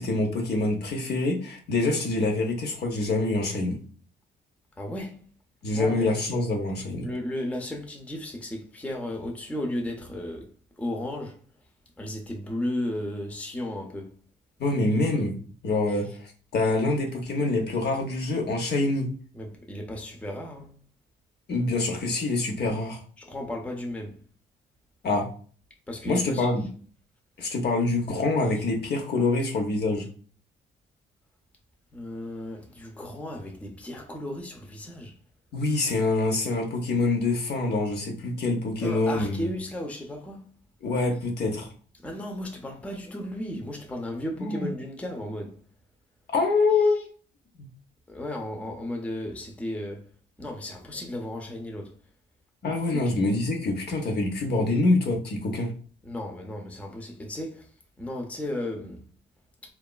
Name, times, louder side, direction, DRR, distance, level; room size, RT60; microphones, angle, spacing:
voice 1, 0.0-3.8 5.6-7.1 14.6-15.3 15.6-19.1 21.5-23.0 25.0-25.3 26.0-26.7 27.4-30.0 35.5-39.5 40.8-41.7 44.4-44.7 46.3-47.0 47.6-47.7 52.6-55.7, left 2 dB, 55° left, 0.7 m, -25 dB
voice 2, 4.8-5.3 5.7-6.1 7.0-10.5 10.8-11.4 12.0-14.2 19.3-20.7 23.2-24.2 25.9-26.5 31.9-35.1 38.8-40.5 42.0-45.6 48.1-50.0 50.4-51.9 52.9-53.1 56.0-57.7 58.0-59.1, left 1 dB, 5° left, 0.5 m, -34 dB
2.8 x 2.3 x 2.2 m
cardioid pair, 90°, 20 cm